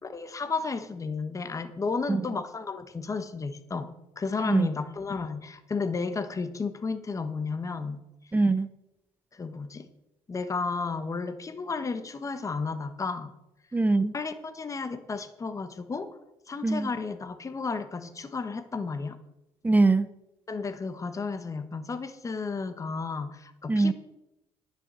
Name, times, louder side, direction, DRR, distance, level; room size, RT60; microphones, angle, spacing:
voice 1, 0.0-8.0 9.3-9.9 10.3-13.3 14.1-16.2 16.5-19.2 20.5-23.9, left 4 dB, 30° left, 10 dB, 1.3 m, -33 dB
voice 2, 8.3-8.7 13.7-14.1 16.6-16.9 19.6-20.1 23.7-23.9, right 3 dB, 15° right, 14 dB, 0.6 m, -22 dB
10.0 x 7.2 x 7.6 m, 0.91 s
cardioid pair, 85°, 11 cm